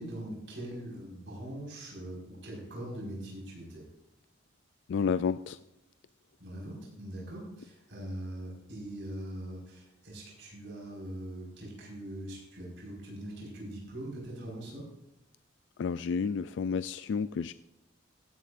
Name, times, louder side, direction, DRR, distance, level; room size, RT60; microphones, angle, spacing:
voice 1, 0.0-3.8 6.4-14.8, right 1 dB, 70° right, -3 dB, 5.1 m, -42 dB
voice 2, 4.9-5.6 15.8-17.5, left 6 dB, 65° left, 13 dB, 0.3 m, -30 dB
16.5 x 10.5 x 2.6 m, 0.86 s
head